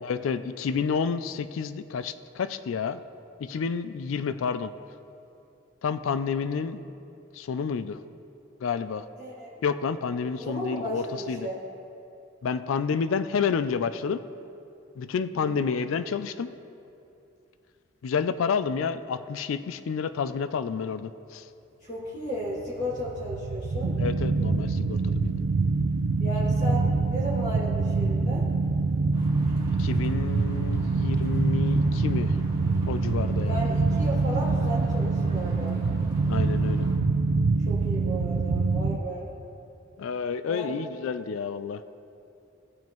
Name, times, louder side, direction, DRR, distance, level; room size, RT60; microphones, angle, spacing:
voice 1, 0.0-3.0 3.4-4.7 5.8-6.8 7.3-8.0 8.6-9.0 9.6-11.5 12.4-14.2 15.0-16.5 18.0-21.4 24.0-25.4 29.8-32.3 32.9-33.6 36.3-36.9 40.0-41.8, left 6 dB, 85° left, 12 dB, 0.4 m, -29 dB
voice 2, 9.2-9.5 10.3-11.6 15.3-15.8 21.8-23.9 26.2-28.4 33.4-35.8 37.7-39.3 40.5-40.8, equal, 40° left, -8 dB, 2.3 m, -34 dB
sound 1, 22.6-39.0, right 3 dB, 80° right, 0.4 m, -25 dB
sound 2, 29.1-37.0, equal, 20° right, 2.1 m, -44 dB
16.5 x 7.2 x 3.0 m, 2.7 s
head